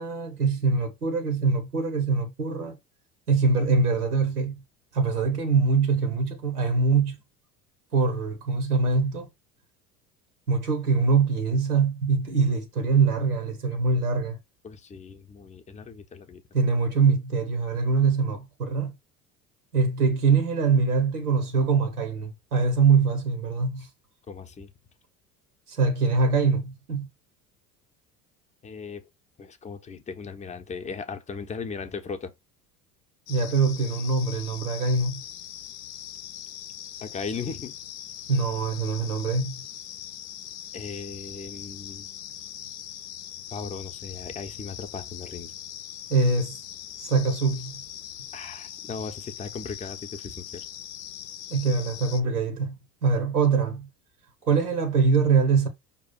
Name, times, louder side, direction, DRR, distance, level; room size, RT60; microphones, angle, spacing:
voice 1, 0.0-2.7 3.3-4.6 4.9-7.2 7.9-9.3 10.5-14.4 16.5-18.9 19.7-23.9 25.7-27.1 33.3-35.2 38.3-39.6 46.1-46.6 47.0-47.7 51.5-52.8 53.0-53.9 54.4-55.7, right 4 dB, 85° right, 0.9 m, -23 dB
voice 2, 14.6-16.4 24.3-24.7 28.6-29.0 29.4-32.3 37.0-37.8 40.7-42.1 43.5-45.5 48.3-50.6, left 5 dB, 15° left, 0.6 m, -37 dB
sound 1, 33.3-52.2, left 11 dB, 65° left, 0.7 m, -41 dB
5.2 x 2.4 x 4.1 m
figure-of-eight pair, 65°, 44 cm